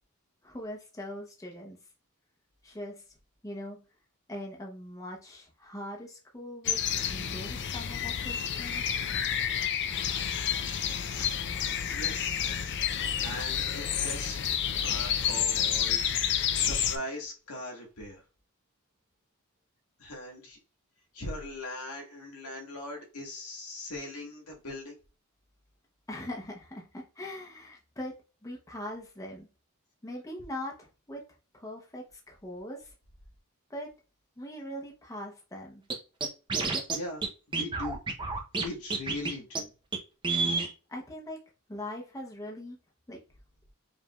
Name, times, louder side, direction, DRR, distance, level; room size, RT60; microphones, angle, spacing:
voice 1, 0.4-1.8 2.6-3.0 3.4-3.8 4.3-6.8 7.1-8.8 26.1-28.1 28.4-29.5 30.0-31.2 31.5-32.9 33.7-33.9 34.4-35.8 40.9-41.4 41.7-42.8 43.1-43.2, left 1 dB, 15° left, 0.8 m, -41 dB
sound 1, 6.6-17.0, left 8 dB, 55° left, 0.5 m, -30 dB
voice 2, 11.9-12.4 13.2-14.6 14.8-18.2 20.0-20.6 21.1-25.0 36.9-38.0 38.6-39.7, left 1 dB, 85° left, 1.6 m, -40 dB
Scratching (performance technique), 35.9-36.0 36.2-37.0 37.2-37.3 37.5-38.6 38.9-39.3 39.5-39.6 39.9-40.0 40.2-40.7, right 4 dB, 20° right, 0.7 m, -29 dB
5.1 x 3.3 x 2.3 m
head